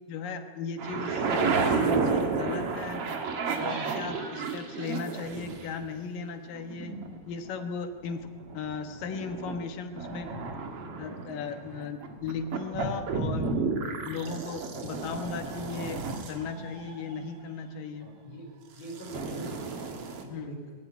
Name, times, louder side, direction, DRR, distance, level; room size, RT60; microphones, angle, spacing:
voice 1, 0.1-3.0 3.6-7.0 7.3-10.4 11.0-13.6 14.1-18.1 20.3-20.5, left 5 dB, 70° left, 7 dB, 2.9 m, -37 dB
sound 1, 0.8-5.7 6.5-7.7 8.1-9.6 10.0-17.5 18.9-20.2, right 4 dB, 50° right, 2.2 m, -32 dB
voice 2, 18.0-19.8 20.2-20.6, right 1 dB, 30° left, 1 dB, 4.7 m, -43 dB
21.0 x 14.0 x 9.4 m, 1.5 s
omnidirectional pair, 4.3 m